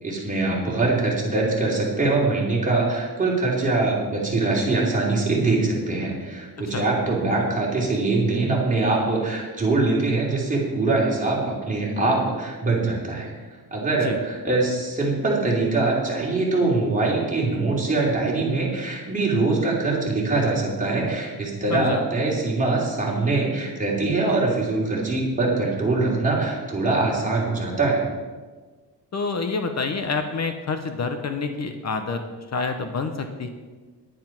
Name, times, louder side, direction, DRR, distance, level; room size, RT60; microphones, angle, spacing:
voice 1, 0.0-28.0, right 3 dB, 20° right, -4 dB, 3.1 m, -23 dB
voice 2, 21.7-22.0 29.1-32.2 32.5-33.5, left 4 dB, 45° left, 7 dB, 0.9 m, -27 dB
10.0 x 9.5 x 5.9 m, 1.4 s
wide cardioid pair, 155°, 39 cm